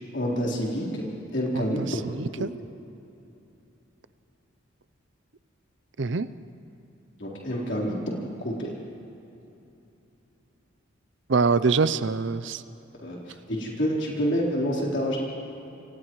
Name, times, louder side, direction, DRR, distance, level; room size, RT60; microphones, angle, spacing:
voice 1, 0.1-1.1 1.3-1.8 2.4-2.5 7.2-8.0 8.4-8.7 13.0-15.2, equal, 60° left, -4 dB, 4.1 m, -28 dB
voice 2, 1.5-1.9 2.2-2.5 6.0-6.3 11.3-12.6, right 4 dB, 60° right, 13 dB, 0.6 m, -24 dB
29.5 x 27.5 x 3.2 m, 2.9 s
head